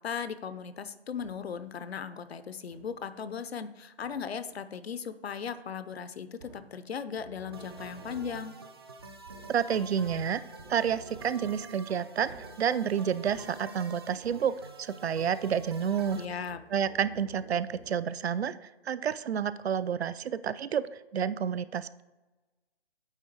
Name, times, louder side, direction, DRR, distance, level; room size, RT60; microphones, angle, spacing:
voice 1, 0.0-8.5 16.1-16.6, left 7 dB, 70° left, 13 dB, 0.6 m, -37 dB
sound 1, 1.2-1.7 2.7-3.2 4.0-4.6 6.3-14.8 15.1-18.3, right 3 dB, 65° right, 1.4 m, -52 dB
sound 2, 7.5-16.2, right 3 dB, 25° right, 0.4 m, -48 dB
voice 2, 9.5-10.4 10.7-16.2 16.7-18.6 18.9-22.0, right 8 dB, 80° right, 16 dB, 0.5 m, -30 dB
9.0 x 3.7 x 4.6 m, 1.1 s
figure-of-eight pair, 150°, 32 cm